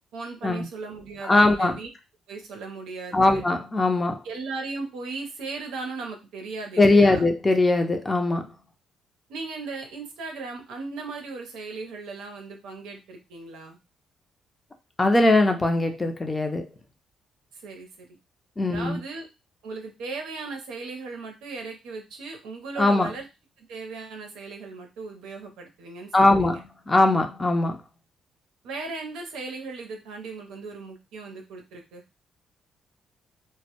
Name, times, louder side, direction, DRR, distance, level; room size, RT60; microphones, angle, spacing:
voice 1, 0.1-1.9 2.3-3.4 4.2-7.3 9.3-13.8 17.5-18.2 18.6-19.3 19.6-23.3 23.6-26.6 28.6-32.0, right 3 dB, 90° right, 0.6 m, -37 dB
voice 2, 1.2-1.8 3.1-4.2 6.8-8.5 15.0-16.6 18.6-19.0 22.8-23.1 26.1-27.8, left 2 dB, 25° left, 0.5 m, -20 dB
2.1 x 2.1 x 2.8 m
cardioid pair, 90°, 0 cm